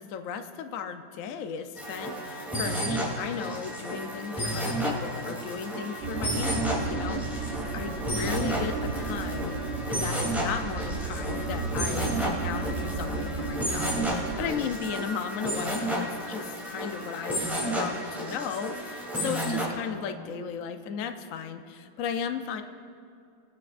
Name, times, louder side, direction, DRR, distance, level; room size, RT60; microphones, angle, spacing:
voice 1, 0.0-9.6 9.9-22.6, left 7 dB, 75° left, 7 dB, 0.7 m, -36 dB
sound 1, 1.8-19.6, equal, ahead, 2.7 m, -32 dB
sound 2, 6.0-14.5, right 4 dB, 50° right, 0.9 m, -33 dB
24.5 x 9.6 x 2.5 m, 2.5 s
omnidirectional pair, 2.2 m